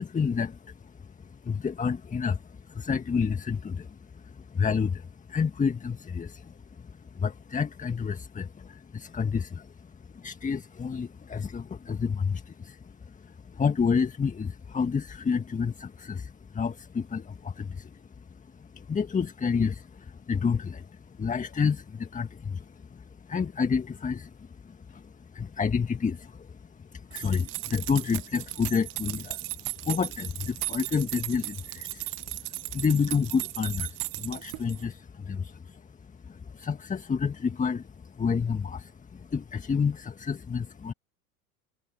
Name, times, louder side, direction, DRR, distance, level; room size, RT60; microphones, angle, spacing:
voice 1, 0.0-40.9, left 6 dB, 15° left, 1.8 m, -30 dB
sound 1, 27.1-34.9, right 22 dB, 45° right, 1.6 m, -36 dB
figure-of-eight pair, 80°, 44 cm